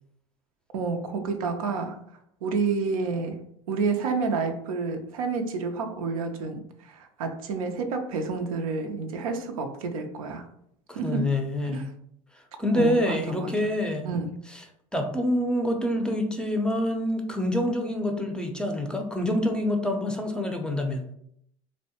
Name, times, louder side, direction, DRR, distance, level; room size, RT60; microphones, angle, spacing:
voice 1, 0.7-2.0 2.4-10.5 10.9-11.3 11.6-11.9 12.7-13.5 14.0-14.4, right 4 dB, 90° right, 0.4 m, -29 dB
voice 2, 11.0-11.8 12.6-14.1 14.9-21.0, left 1 dB, 5° left, 0.4 m, -26 dB
2.6 x 2.1 x 2.8 m
hypercardioid pair, 85°, 17 cm